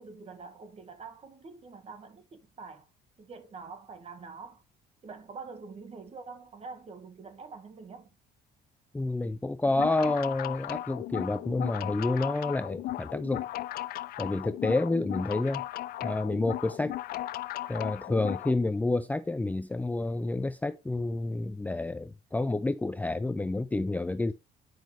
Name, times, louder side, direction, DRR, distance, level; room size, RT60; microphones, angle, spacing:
voice 1, 0.0-2.9 3.2-4.6 5.0-8.1, right 4 dB, 40° right, 1.7 m, -45 dB
voice 2, 8.9-13.5 14.2-15.6 16.0-16.9 17.7-24.3, left 2 dB, 10° left, 0.5 m, -29 dB
sound 1, 9.7-18.5, left 15 dB, 60° left, 0.4 m, -36 dB
9.3 x 5.3 x 3.3 m
cardioid pair, 110°, 17 cm